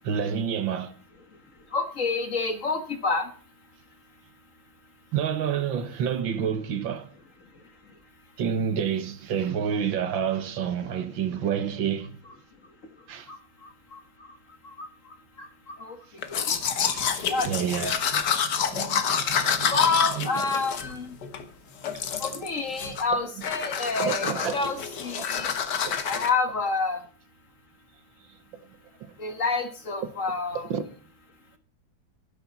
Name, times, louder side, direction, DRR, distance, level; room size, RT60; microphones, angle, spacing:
voice 1, 0.0-1.0 5.1-7.1 8.4-12.2 13.1-13.3 16.9-19.8 20.1-20.3 23.1-23.2 24.0-24.7 25.2-26.0 30.0-30.1 30.5-30.9, right 8 dB, 70° right, 1.9 m, -29 dB
voice 2, 1.7-3.3 13.3-13.4 13.9-14.0 14.8-14.9 15.4-16.0 16.3-16.4 17.3-17.5 17.8-17.9 19.7-21.1 22.2-25.5 26.0-27.0 29.2-30.7, left 4 dB, 45° left, 1.6 m, -28 dB
Domestic sounds home sounds, 16.2-21.4 21.8-22.5 22.8-23.1 23.4-26.3, left 7 dB, 60° left, 1.8 m, -28 dB
12.0 x 10.5 x 4.1 m
omnidirectional pair, 2.2 m